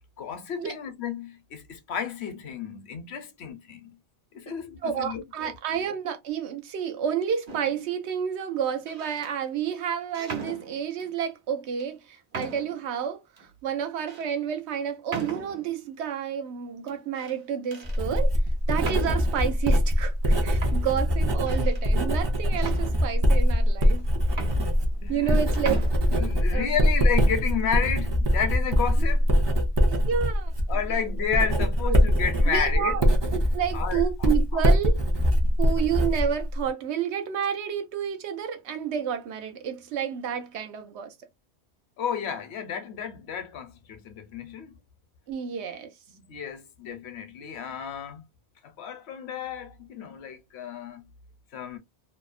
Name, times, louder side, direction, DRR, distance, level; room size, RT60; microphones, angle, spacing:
voice 1, 0.2-4.0 4.3-5.5 25.0-25.4 26.1-29.3 30.7-33.0 33.7-34.6 35.4-35.6 42.0-44.8 46.3-48.2 48.6-51.1 51.5-51.8, left 7 dB, 75° left, 0.9 m, -32 dB
voice 2, 4.8-18.4 18.7-24.1 25.1-25.8 26.5-26.7 29.9-30.5 30.9-31.0 31.9-32.0 32.5-33.0 33.3-35.0 35.6-41.1 45.3-45.9, right 8 dB, 85° right, 0.9 m, -30 dB
sound 1, 7.5-7.9 8.7-9.3 10.1-11.1 11.8-11.9 12.3-12.9 13.4-13.5 14.1-14.3 15.1-15.8 16.9-17.4 17.7-18.0 18.8-19.4 20.2-20.3 20.6-21.9 22.6-23.4 24.0-24.1 24.3-25.3 25.5-25.9, right 4 dB, 55° right, 1.0 m, -38 dB
Writing, 17.8-36.7, equal, 35° right, 0.4 m, -23 dB
2.7 x 2.0 x 2.4 m
omnidirectional pair, 1.1 m